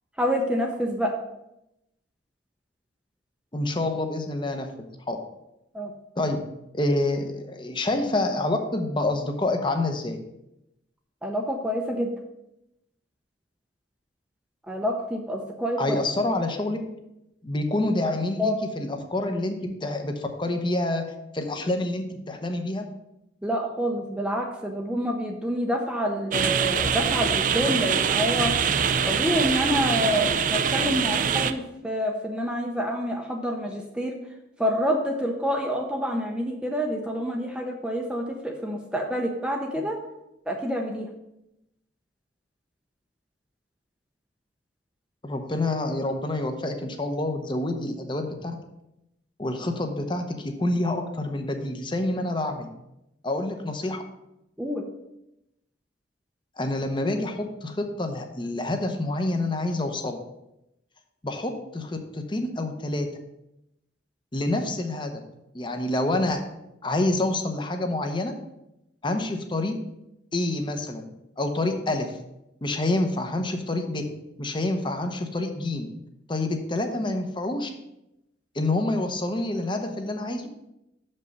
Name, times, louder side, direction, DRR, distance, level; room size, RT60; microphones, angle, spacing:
voice 1, 0.2-1.1 5.7-5.9 11.2-12.1 14.7-16.0 18.1-18.6 23.4-28.5 29.0-34.2 34.6-40.0 40.5-41.1 54.6-54.8, equal, 5° right, 1 dB, 0.6 m, -27 dB
voice 2, 3.5-5.2 6.2-6.4 6.7-10.2 15.8-16.8 17.4-21.0 21.3-22.9 45.2-48.5 49.4-52.7 53.2-54.0 56.6-60.2 61.2-63.1 64.3-65.2 65.5-66.4 66.8-68.3 69.0-69.7 70.3-71.1 71.4-72.2 72.6-74.0 74.4-75.9 76.3-77.7 78.5-80.5, left 2 dB, 25° left, 5 dB, 0.8 m, -27 dB
sound 1, 26.3-31.5, right 7 dB, 45° right, 0.4 m, -24 dB
6.8 x 5.4 x 5.3 m, 0.87 s
head